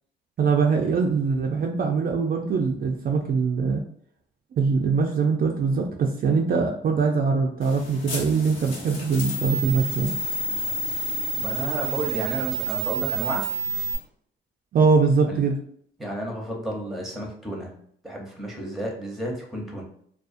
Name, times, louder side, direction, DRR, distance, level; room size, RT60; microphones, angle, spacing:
voice 1, 0.4-3.8 4.6-10.1 14.7-15.6, right 5 dB, 45° right, 1 dB, 0.4 m, -22 dB
sound 1, 7.6-13.9, right 4 dB, 70° left, 0.9 m, -29 dB
voice 2, 11.4-13.5 15.3-15.4 16.0-17.8 18.0-19.8, equal, ahead, 0 dB, 0.8 m, -32 dB
2.4 x 2.3 x 2.5 m, 0.63 s
cardioid pair, 90°, 20 cm